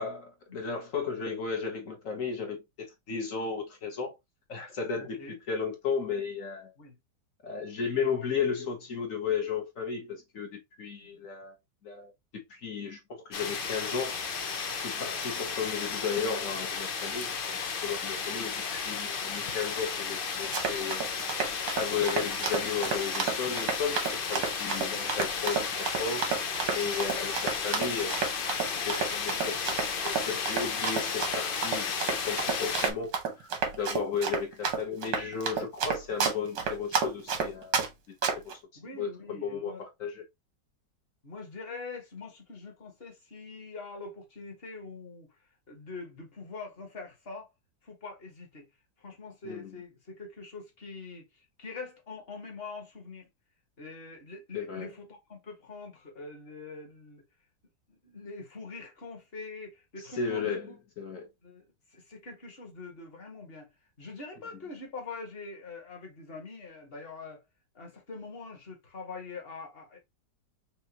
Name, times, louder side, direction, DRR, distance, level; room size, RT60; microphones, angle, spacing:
voice 1, 0.0-4.2 4.5-6.7 7.4-11.5 11.8-14.2 14.7-21.1 21.5-26.3 26.7-28.3 28.8-37.7 38.1-38.2 38.9-40.2 49.4-49.8 54.5-54.9 60.0-61.3, left 6 dB, 50° left, 1.5 m, -34 dB
voice 2, 5.0-5.4 6.8-7.0 11.0-11.2 15.0-15.1 38.8-39.8 41.2-45.3 45.7-47.5 47.8-48.7 49.0-53.3 53.8-57.2 57.9-60.7 61.4-61.6 61.9-63.7 64.0-67.4 67.8-70.0, left 3 dB, 35° left, 1.7 m, -44 dB
sound 1, 13.3-32.9, left 5 dB, 65° left, 0.5 m, -33 dB
Run, 20.3-37.9 38.2-38.5, right 6 dB, 90° right, 1.8 m, -30 dB
5.6 x 2.6 x 2.9 m
omnidirectional pair, 1.9 m